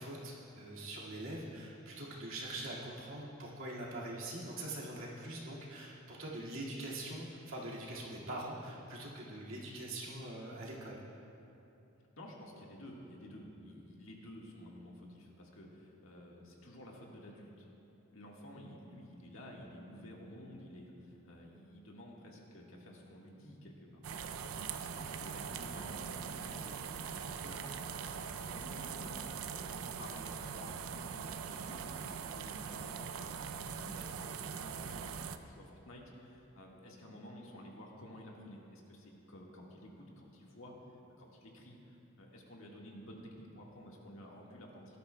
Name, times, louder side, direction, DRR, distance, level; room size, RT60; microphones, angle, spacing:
voice 1, 0.0-11.0, right 1 dB, 70° right, -5 dB, 2.1 m, -43 dB
voice 2, 12.2-17.7 18.1-27.6 28.0-40.7 41.2-45.0, left 1 dB, 70° left, -2 dB, 1.7 m, -52 dB
sound 1, 24.0-35.4, right 6 dB, 85° right, 0.5 m, -42 dB
18.0 x 12.0 x 2.2 m, 3.0 s
head